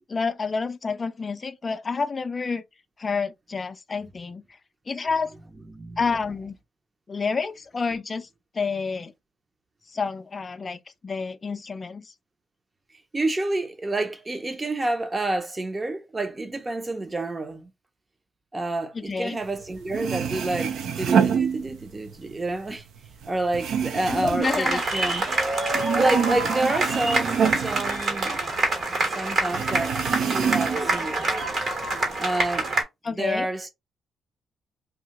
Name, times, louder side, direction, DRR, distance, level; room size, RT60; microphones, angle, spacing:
voice 1, 0.1-2.6 3.0-4.4 4.9-5.3 6.0-6.5 7.1-8.3 8.5-9.1 9.9-12.1 18.9-19.4 24.1-24.8 33.0-33.5, left 4 dB, 35° left, 0.4 m, -29 dB
voice 2, 5.7-6.1 13.1-17.7 18.5-22.8 23.3-25.2 25.7-28.4 29.1-31.3 32.2-32.7 33.1-33.7, right 2 dB, 25° right, 0.6 m, -29 dB
sound 1, 19.6-19.7 19.9-22.1 22.5-25.4 25.7-28.7 29.0-29.1 29.5-31.0 31.4-32.1, right 7 dB, 75° right, 0.5 m, -27 dB
sound 2, 24.4-32.8, right 2 dB, 50° right, 1.2 m, -26 dB
2.7 x 2.3 x 2.9 m
cardioid pair, 90°, 0 cm